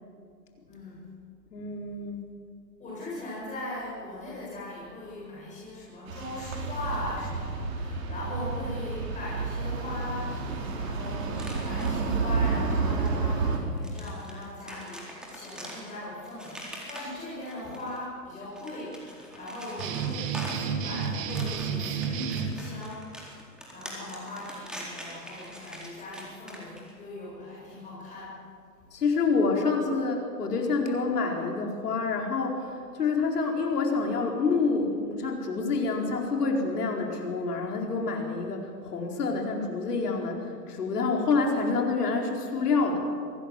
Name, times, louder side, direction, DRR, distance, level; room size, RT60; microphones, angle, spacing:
voice 1, 0.7-1.1 2.8-23.3 23.7-28.4, left 1 dB, 15° left, -7 dB, 7.8 m, -39 dB
voice 2, 1.5-2.3 28.9-43.0, left 4 dB, 65° left, 1 dB, 4.6 m, -27 dB
sound 1, 6.1-13.6, right 4 dB, 50° right, 4.4 m, -30 dB
sound 2, 11.4-12.2 13.0-13.1 13.5-18.0 18.4-26.9, equal, ahead, 4.0 m, -43 dB
sound 3, 19.8-22.5, right 7 dB, 25° right, 2.1 m, -31 dB
24.5 x 19.0 x 7.8 m, 2.2 s
figure-of-eight pair, 125°, 50 cm